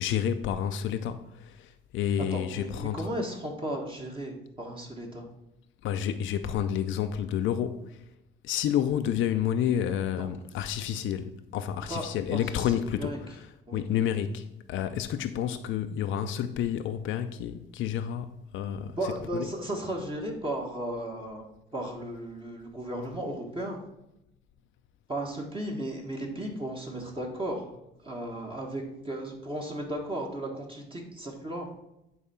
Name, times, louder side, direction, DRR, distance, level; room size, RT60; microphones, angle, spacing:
voice 1, 0.0-3.1 5.8-8.0 8.4-13.5 13.7-19.0 19.3-19.5, left 9 dB, 75° left, 0.5 m, -30 dB
voice 2, 2.3-5.3 10.2-10.3 11.9-12.0 12.3-13.2 13.7-13.8 18.9-21.4 21.7-23.8 25.1-27.7 28.0-31.7, right 1 dB, 25° right, 1.4 m, -35 dB
8.5 x 3.4 x 5.5 m
cardioid pair, 90°, 20 cm